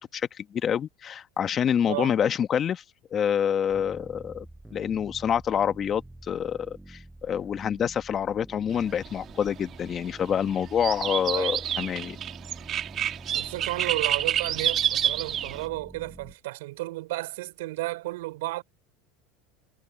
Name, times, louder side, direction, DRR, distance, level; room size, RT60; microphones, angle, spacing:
voice 1, 0.0-2.8 3.1-4.5 4.7-12.2, left 8 dB, 35° left, 1.4 m, -27 dB
sound 1, 3.7-16.3, right 1 dB, 5° right, 5.4 m, -47 dB
sound 2, 8.7-15.7, right 10 dB, 40° right, 2.0 m, -29 dB
voice 2, 13.3-18.6, right 19 dB, 80° right, 4.4 m, -33 dB
supercardioid pair, 115°, 0 cm